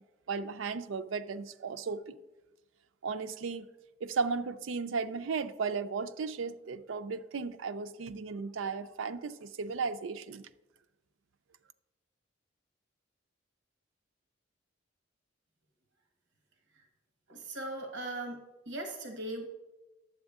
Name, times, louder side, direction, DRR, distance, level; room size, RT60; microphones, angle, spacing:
voice 1, 0.3-2.2 3.0-3.7 4.0-10.5, right 5 dB, 80° right, 0.5 m, -35 dB
voice 2, 17.3-18.4 18.6-19.5, right 2 dB, 65° right, 1.2 m, -39 dB
11.5 x 7.9 x 3.6 m
head